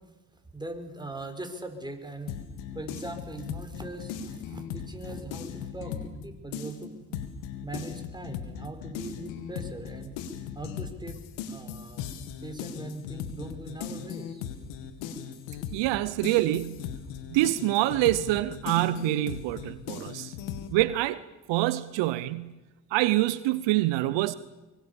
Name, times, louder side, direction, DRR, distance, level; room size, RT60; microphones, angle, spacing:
voice 1, 0.5-2.3 2.7-7.2 7.6-10.1 10.5-11.2 11.5-12.1 12.4-14.4 15.7-15.8, right 2 dB, 10° right, 5.5 m, -40 dB
sound 1, 2.3-6.2 6.5-20.7, left 8 dB, 85° left, 2.3 m, -38 dB
voice 2, 15.7-16.8 17.3-20.3 20.7-21.2 21.5-22.5 22.9-24.3, right 17 dB, 75° right, 0.9 m, -26 dB
24.0 x 24.0 x 7.1 m
hypercardioid pair, 55°, 44 cm